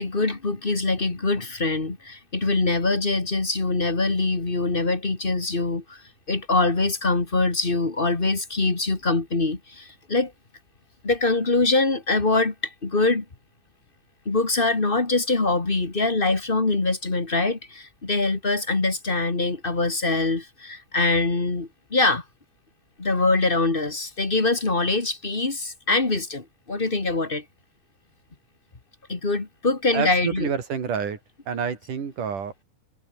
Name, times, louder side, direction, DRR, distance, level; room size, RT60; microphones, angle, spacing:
voice 1, 0.0-6.0 6.3-10.3 11.0-13.2 14.2-22.2 23.0-27.4 29.1-30.5, left 3 dB, 25° left, 1.2 m, -23 dB
voice 2, 29.9-31.2 31.5-32.5, right 7 dB, 55° right, 4.9 m, -28 dB
omnidirectional pair, 4.7 m